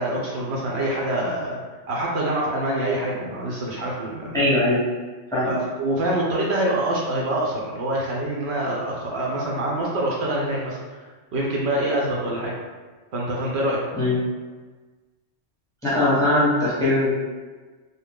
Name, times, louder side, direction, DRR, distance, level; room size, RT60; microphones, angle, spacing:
voice 1, 0.0-1.6 1.9-4.4 5.5-10.8 11.3-12.5 13.1-13.8, right 1 dB, 70° right, -3 dB, 0.8 m, -25 dB
voice 2, 4.3-4.8 5.3-5.5 14.0-14.2 15.8-17.2, left 1 dB, 5° left, -8 dB, 0.7 m, -20 dB
2.8 x 2.0 x 3.3 m, 1.3 s
omnidirectional pair, 1.2 m